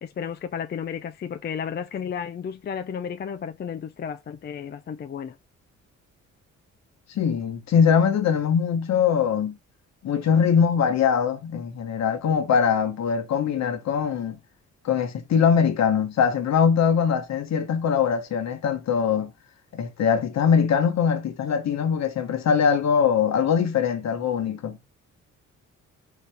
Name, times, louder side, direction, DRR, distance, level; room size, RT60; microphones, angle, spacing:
voice 1, 0.0-5.4, left 7 dB, 35° left, 0.5 m, -33 dB
voice 2, 7.1-9.6 10.0-14.4 14.8-19.3 19.7-24.8, left 7 dB, 60° left, 1.1 m, -22 dB
4.1 x 2.8 x 3.4 m
cardioid pair, 90°, 30 cm